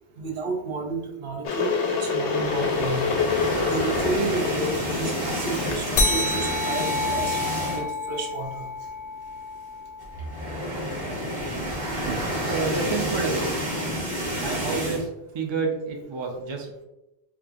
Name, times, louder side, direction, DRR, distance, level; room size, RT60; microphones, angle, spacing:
voice 1, 0.2-3.0 3.6-8.7 12.0-12.3, right 4 dB, 65° right, 1 dB, 0.8 m, -31 dB
Water / Boiling, 1.4-6.6, left 5 dB, 90° left, 0.9 m, -27 dB
sound 1, 2.3-8.0 8.4-8.6 8.9-9.0 10.0-15.0, equal, 20° right, 1.0 m, -30 dB
sound 2, 6.0-10.9, left 2 dB, 65° left, 0.7 m, -29 dB
voice 2, 12.5-13.5 14.4-15.1 15.3-16.8, right 4 dB, 40° right, 1 dB, 0.4 m, -29 dB
4.4 x 2.4 x 2.4 m, 0.92 s
omnidirectional pair, 1.1 m